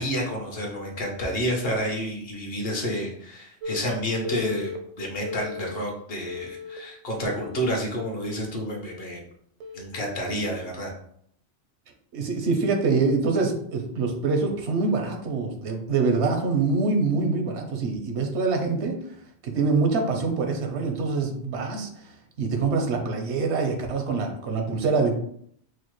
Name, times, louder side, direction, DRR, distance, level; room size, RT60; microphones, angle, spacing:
voice 1, 0.0-4.7 5.0-9.2 9.7-10.9, equal, 60° left, 0 dB, 1.1 m, -29 dB
Telephone, 3.6-3.8 4.2-4.8 5.3-5.8 6.3-6.8 7.3-7.8 8.3-8.6 9.6-9.8, left 4 dB, 55° right, 0.5 m, -36 dB
voice 2, 12.1-19.0 19.4-21.9 22.4-25.2, right 4 dB, 85° right, 4 dB, 1.0 m, -25 dB
4.8 x 2.1 x 3.0 m, 0.67 s
omnidirectional pair, 1.1 m